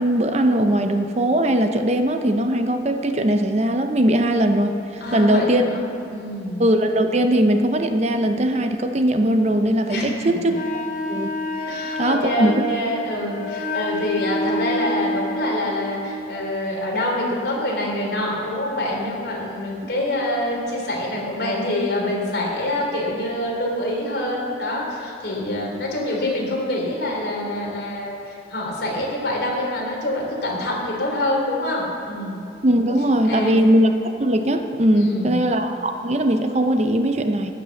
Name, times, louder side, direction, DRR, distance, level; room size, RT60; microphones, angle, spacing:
voice 1, 0.0-5.7 6.6-10.4 11.1-11.3 12.0-12.6 32.6-33.9 34.2-37.5, right 1 dB, 35° right, 7 dB, 0.7 m, -20 dB
voice 2, 5.0-6.6 9.9-10.5 11.6-32.4 33.3-33.6 34.9-35.4, left 1 dB, 65° left, -3 dB, 3.3 m, -26 dB
Wind instrument woodwind instrument, 10.5-16.1, left 1 dB, 45° left, 0.9 m, -28 dB
15.5 x 6.1 x 7.0 m, 2.7 s
head